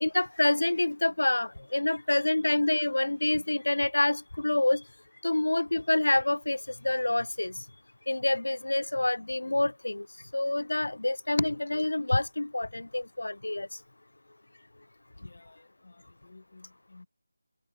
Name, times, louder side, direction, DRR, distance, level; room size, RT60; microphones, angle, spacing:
voice 1, 0.0-4.8 5.2-7.6 8.1-10.1 10.3-13.7, left 2 dB, 85° left, 0.3 m, -27 dB
voice 2, 15.2-17.1, left 3 dB, 45° left, 3.2 m, -55 dB
figure-of-eight pair, 175°, 0 cm